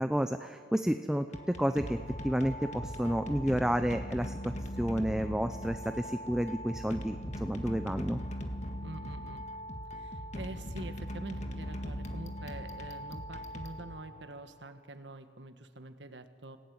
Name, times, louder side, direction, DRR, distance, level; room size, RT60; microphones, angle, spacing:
voice 1, 0.0-2.0 2.2-4.5 4.8-8.2, equal, 5° right, 8 dB, 0.6 m, -30 dB
sound 1, 1.2-14.4, equal, 40° left, 1.9 m, -40 dB
voice 2, 8.8-9.4 9.9-16.6, right 2 dB, 75° right, 8 dB, 1.6 m, -46 dB
26.5 x 17.5 x 9.5 m, 2.1 s
head